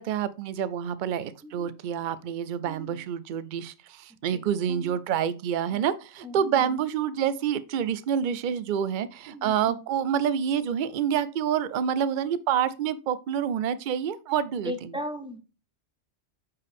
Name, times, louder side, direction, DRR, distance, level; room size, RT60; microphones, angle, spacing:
voice 1, 0.0-14.9, right 8 dB, 55° right, 0.6 m, -28 dB
voice 2, 1.4-1.7 2.7-3.0 4.3-5.0 5.7-5.8 6.2-6.8 9.3-9.8 14.6-15.4, left 1 dB, 5° right, 0.9 m, -38 dB
8.3 x 4.6 x 3.5 m
omnidirectional pair, 1.2 m